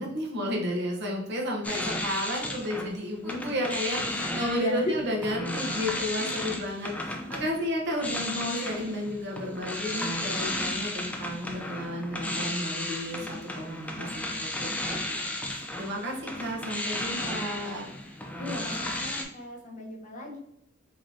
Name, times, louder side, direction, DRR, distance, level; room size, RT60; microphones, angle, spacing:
voice 1, 0.0-15.0 15.5-17.9, equal, 55° right, -1 dB, 0.9 m, -32 dB
sound 1, 1.6-2.9 3.2-19.2, left 1 dB, 5° left, 0.4 m, -34 dB
voice 2, 4.2-4.9 18.4-20.4, left 1 dB, 35° left, -2 dB, 1.0 m, -35 dB
5.1 x 3.0 x 2.7 m, 0.78 s
head